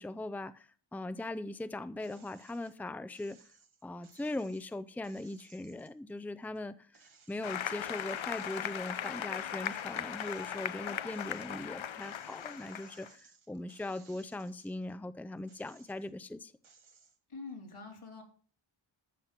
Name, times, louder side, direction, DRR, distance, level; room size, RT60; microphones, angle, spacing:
voice 1, 0.0-3.4 3.8-16.5, left 2 dB, 5° left, 0.6 m, -40 dB
sound 1, 2.0-2.8 3.1-6.6 6.9-9.5 9.9-14.9 15.4-16.2 16.6-17.2, right 6 dB, 70° right, 1.5 m, -63 dB
Applause, 7.4-13.1, left 9 dB, 70° left, 0.7 m, -38 dB
voice 2, 17.3-18.2, left 4 dB, 85° left, 4.0 m, -45 dB
13.5 x 7.4 x 5.9 m
wide cardioid pair, 85°, 49 cm